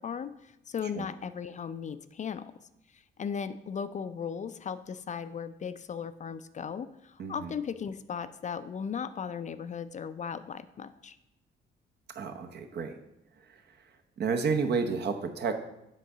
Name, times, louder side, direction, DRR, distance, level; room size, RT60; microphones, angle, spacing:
voice 1, 0.0-2.5 2.9-11.2, left 7 dB, 40° left, 12 dB, 0.4 m, -37 dB
voice 2, 7.2-7.5 12.1-13.0 14.2-15.6, right 5 dB, 55° right, 6 dB, 0.9 m, -30 dB
7.7 x 3.7 x 6.7 m, 0.86 s
cardioid pair, 90°, 20 cm